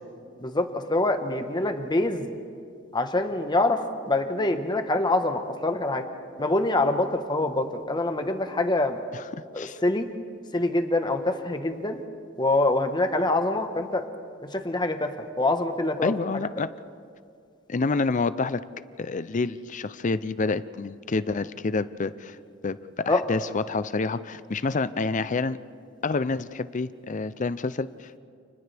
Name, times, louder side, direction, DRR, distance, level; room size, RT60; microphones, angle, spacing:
voice 1, 0.4-2.3 2.9-3.8 4.1-6.0 6.4-9.0 9.5-10.1 10.5-12.0 12.4-14.0 14.4-16.1 23.1-23.2, left 2 dB, 20° left, 6 dB, 1.3 m, -25 dB
voice 2, 16.0-16.7 17.7-18.6 19.0-22.4 22.6-25.6 26.0-28.2, left 3 dB, 40° left, 14 dB, 0.5 m, -28 dB
30.0 x 29.5 x 3.5 m, 2.3 s
head